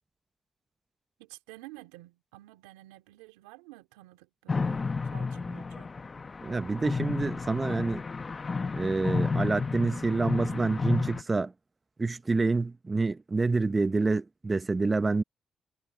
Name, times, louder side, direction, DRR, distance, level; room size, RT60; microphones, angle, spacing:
voice 1, 1.2-6.0, right 20 dB, 90° right, 3.3 m, -51 dB
sound 1, 4.5-11.2, left 4 dB, 40° left, 1.4 m, -32 dB
voice 2, 6.4-8.0 8.7-11.5 12.0-15.2, right 3 dB, 35° right, 1.2 m, -27 dB
hypercardioid pair, 45°, 0 cm